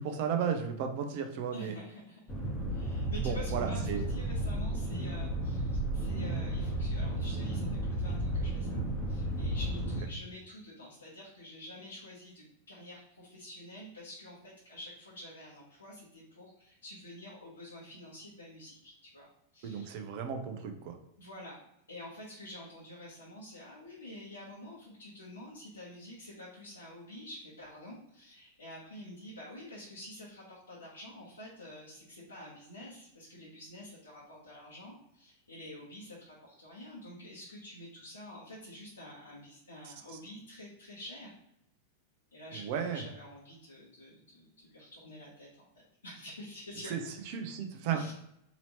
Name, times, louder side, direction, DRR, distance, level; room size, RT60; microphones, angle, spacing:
voice 1, 0.0-1.7 3.2-4.0 19.6-20.9 42.6-43.0 46.9-47.0 47.3-48.0, right 7 dB, 50° right, 5 dB, 0.7 m, -34 dB
voice 2, 1.5-2.2 2.7-19.3 19.5-20.0 21.2-21.6 21.9-41.3 42.3-46.9 47.9-48.1, left 1 dB, 80° left, -7 dB, 1.2 m, -48 dB
sound 1, 2.3-10.0, right 1 dB, 15° left, 1.0 m, -33 dB
4.1 x 2.8 x 3.0 m, 0.79 s
figure-of-eight pair, 90°, 0 cm